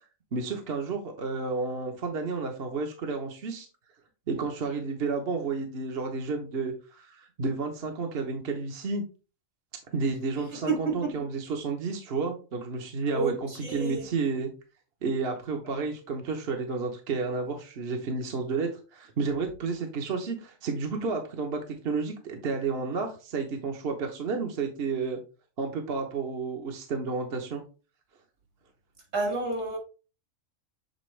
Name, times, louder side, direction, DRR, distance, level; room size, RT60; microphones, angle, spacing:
voice 1, 0.3-3.7 4.3-9.0 9.9-14.5 15.0-25.2 25.6-27.6, right 4 dB, 55° right, 1.1 m, -31 dB
voice 2, 10.7-11.1 13.1-14.0 29.1-29.8, right 3 dB, 75° right, 2.7 m, -30 dB
7.7 x 4.0 x 3.2 m
omnidirectional pair, 1.4 m